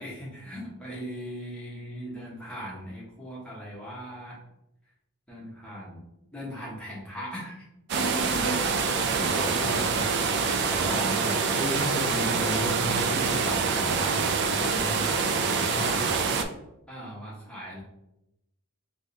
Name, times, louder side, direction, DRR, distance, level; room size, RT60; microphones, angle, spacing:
voice 1, 0.0-4.4 5.3-6.0 6.3-7.6 7.9-8.9 9.2-9.3 10.9-11.0 16.9-17.8, right 1 dB, 5° left, -6 dB, 1.0 m, -38 dB
sound 1, 7.9-16.4, right 5 dB, 50° right, 0.3 m, -26 dB
sound 2, 8.0-15.3, left 1 dB, 45° left, 0.7 m, -46 dB
voice 2, 9.3-10.0 10.7-16.2, equal, 15° right, -8 dB, 0.7 m, -34 dB
3.5 x 3.2 x 2.7 m, 0.88 s
head